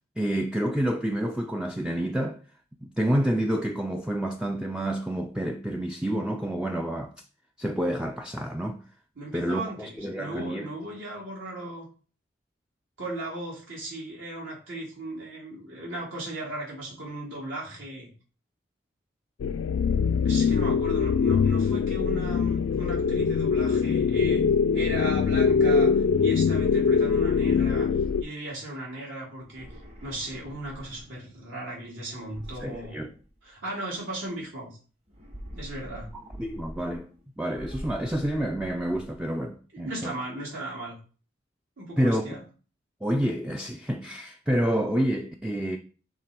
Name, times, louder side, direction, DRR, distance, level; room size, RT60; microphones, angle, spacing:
voice 1, 0.2-2.4 3.0-7.1 7.6-8.8 9.3-10.7 32.6-33.1 36.4-37.1 37.4-40.1 42.0-42.3 43.0-45.8, equal, 5° right, 0.3 m, -28 dB
voice 2, 9.1-11.9 13.0-18.1 20.2-24.4 24.7-25.9 26.2-27.9 28.2-29.7 30.0-33.1 33.4-34.8 35.5-36.1 39.7-41.0 41.8-42.4, right 1 dB, 80° right, 3.1 m, -37 dB
sound 1, 19.4-28.2, left 6 dB, 75° left, 0.3 m, -23 dB
sound 2, 29.4-31.3 32.2-33.7 35.1-37.2 37.5-39.2, equal, 35° right, 1.1 m, -44 dB
6.8 x 3.3 x 4.3 m
head